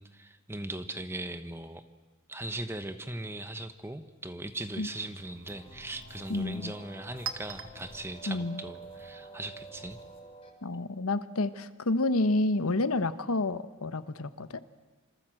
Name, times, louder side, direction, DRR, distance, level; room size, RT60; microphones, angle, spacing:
voice 1, 0.0-1.8 2.3-10.0, right 2 dB, 10° right, 10 dB, 1.2 m, -39 dB
Chink clink, 4.3-9.8, right 7 dB, 65° right, 1.5 m, -47 dB
sound 1, 5.5-10.5, right 2 dB, 25° left, 4.1 m, -48 dB
voice 2, 6.3-6.7 8.3-8.6 10.6-14.6, left 2 dB, 80° left, 12 dB, 1.1 m, -29 dB
26.5 x 26.0 x 7.8 m, 1.3 s
head